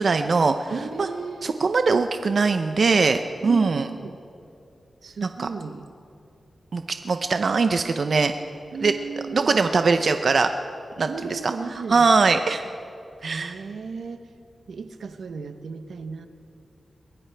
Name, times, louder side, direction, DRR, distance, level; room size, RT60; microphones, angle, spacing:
voice 1, 0.0-0.7 1.0-1.1 1.4-3.9 5.2-5.5 6.7-8.3 8.8-8.9 9.3-10.5 11.0-12.6 13.2-13.6, right 4 dB, 55° right, 7 dB, 0.5 m, -21 dB
voice 2, 0.7-1.5 3.4-4.2 5.0-5.9 8.7-9.6 11.1-12.0 13.2-14.3 14.7-16.3, right 4 dB, 85° right, 9 dB, 0.8 m, -35 dB
23.0 x 18.0 x 3.4 m, 2.5 s
wide cardioid pair, 150°, 0 cm